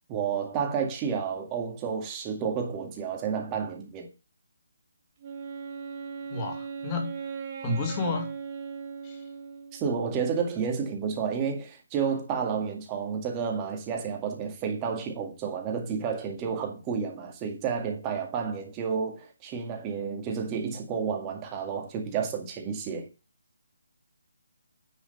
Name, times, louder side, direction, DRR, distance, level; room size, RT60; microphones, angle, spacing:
voice 1, 0.1-4.1 9.7-23.1, right 6 dB, 20° right, 2.0 m, -31 dB
Wind instrument woodwind instrument, 5.2-10.0, right 6 dB, 35° right, 1.5 m, -38 dB
voice 2, 6.3-7.1 7.6-8.3 9.0-9.2, left 3 dB, 20° left, 2.5 m, -31 dB
9.9 x 4.9 x 5.6 m
hypercardioid pair, 165°, 0 cm